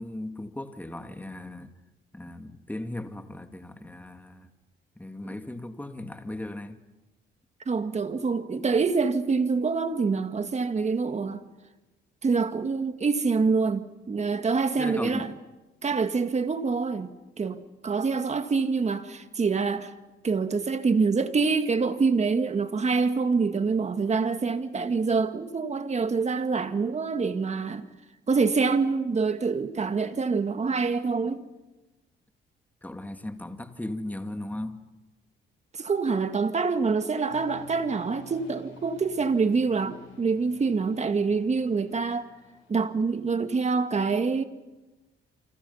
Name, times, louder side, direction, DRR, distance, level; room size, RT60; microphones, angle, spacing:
voice 1, 0.0-1.7 2.1-4.5 5.0-6.8 14.8-15.4 32.8-34.8, left 1 dB, 10° left, 2.3 m, -37 dB
voice 2, 7.7-11.4 12.2-15.3 15.8-17.1 17.4-17.6 17.8-19.9 20.2-27.9 28.3-31.4 35.8-42.3 42.7-44.4, right 4 dB, 35° right, 2.0 m, -26 dB
sound 1, 37.3-43.1, left 5 dB, 80° left, 7.5 m, -51 dB
29.0 x 26.0 x 5.7 m
cardioid pair, 90°, 20 cm